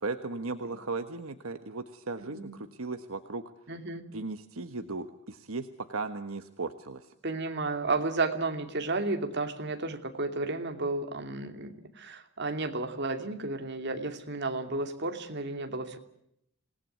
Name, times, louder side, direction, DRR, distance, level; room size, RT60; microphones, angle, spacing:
voice 1, 0.0-3.6 4.1-7.1, right 3 dB, 80° right, 8 dB, 1.3 m, -37 dB
voice 2, 2.2-2.5 3.7-4.1 7.2-16.0, right 3 dB, 55° right, 5 dB, 2.8 m, -32 dB
27.0 x 19.0 x 9.4 m, 0.78 s
head